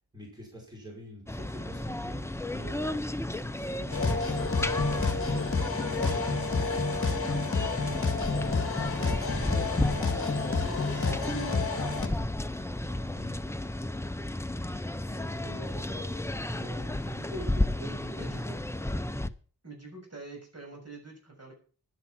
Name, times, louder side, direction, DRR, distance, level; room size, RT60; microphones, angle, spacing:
voice 1, 0.1-5.6 8.4-13.6 14.6-16.2 16.5-18.6, equal, 10° right, -1 dB, 5.3 m, -46 dB
sound 1, 1.3-19.3, left 1 dB, 5° left, 0.6 m, -33 dB
sound 2, 3.9-12.1, left 4 dB, 35° left, 2.0 m, -29 dB
voice 2, 7.6-8.0 14.9-15.9 18.1-18.6 19.6-21.5, right 3 dB, 40° right, 1 dB, 6.6 m, -46 dB
11.5 x 10.5 x 5.9 m, 0.40 s
wide cardioid pair, 135°, 39 cm